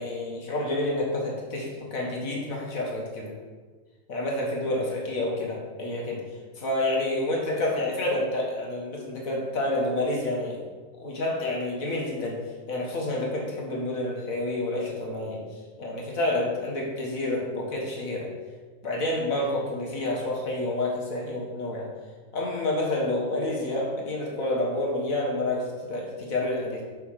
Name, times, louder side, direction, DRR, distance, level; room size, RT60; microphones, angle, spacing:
voice 1, 0.0-3.3 4.1-6.2 6.6-10.6 11.0-12.4 12.7-18.3 18.8-21.9 22.3-26.8, left 1 dB, 85° left, -2 dB, 1.9 m, -29 dB
5.7 x 5.6 x 6.3 m, 1.4 s
omnidirectional pair, 1.4 m